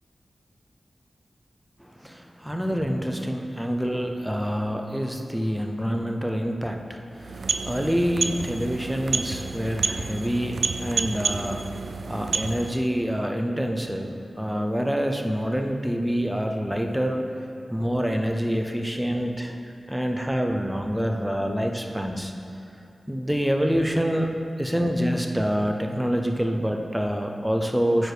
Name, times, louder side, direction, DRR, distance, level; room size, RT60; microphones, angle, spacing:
voice 1, 1.8-11.6 12.1-17.2 17.7-19.6 19.9-22.3 23.1-24.3 24.6-28.1, equal, 5° right, 3 dB, 0.6 m, -26 dB
sound 1, 7.1-12.9, right 4 dB, 75° right, 0.3 m, -29 dB
9.2 x 4.7 x 4.9 m, 2.7 s
wide cardioid pair, 110°, 0 cm